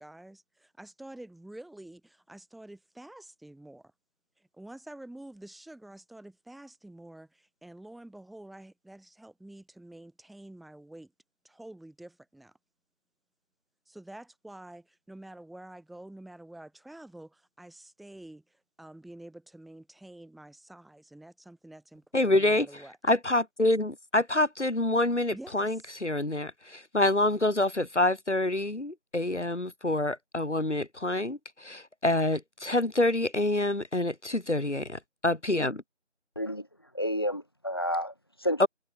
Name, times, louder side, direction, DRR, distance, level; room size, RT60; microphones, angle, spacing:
voice 1, 0.0-3.9 4.4-11.1 11.4-12.5 13.9-22.9 25.3-25.9, right 1 dB, ahead, 6.3 m, -48 dB
voice 2, 22.1-22.7 23.0-35.8 38.6-38.7, left 2 dB, 70° left, 2.9 m, -27 dB
voice 3, 36.9-38.7, equal, 20° left, 2.2 m, -30 dB
figure-of-eight pair, 175°, 37 cm